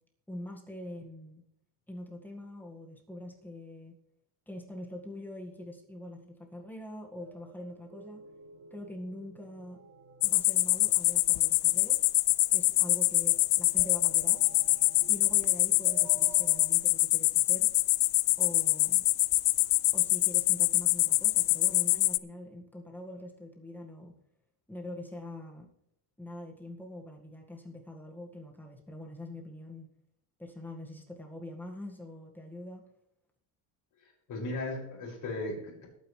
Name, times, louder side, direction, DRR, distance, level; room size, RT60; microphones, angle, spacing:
voice 1, 0.3-1.4 1.9-3.9 4.5-8.2 8.7-9.8 10.2-12.0 12.5-14.4 15.1-17.7 18.4-19.0 19.9-24.2 24.7-25.7 26.2-29.9 30.4-32.8, left 1 dB, 5° left, 0 dB, 1.8 m, -44 dB
sound 1, 7.2-16.7, right 5 dB, 50° right, 2.3 m, -53 dB
sound 2, 10.2-22.2, left 23 dB, 80° left, 0.6 m, -25 dB
voice 2, 34.0-35.9, left 2 dB, 40° left, -4 dB, 6.2 m, -37 dB
21.0 x 9.2 x 3.3 m, 0.77 s
cardioid pair, 155°, 48 cm